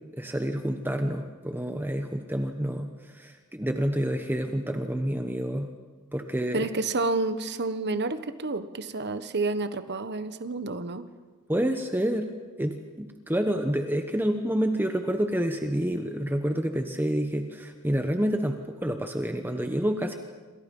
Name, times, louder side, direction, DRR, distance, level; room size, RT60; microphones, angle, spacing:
voice 1, 0.1-5.7 6.1-6.7 11.5-12.3 12.6-20.1, equal, 10° right, 5 dB, 1.1 m, -28 dB
voice 2, 6.5-11.1, right 3 dB, 50° right, 11 dB, 1.2 m, -29 dB
28.0 x 26.5 x 5.5 m, 1.4 s
head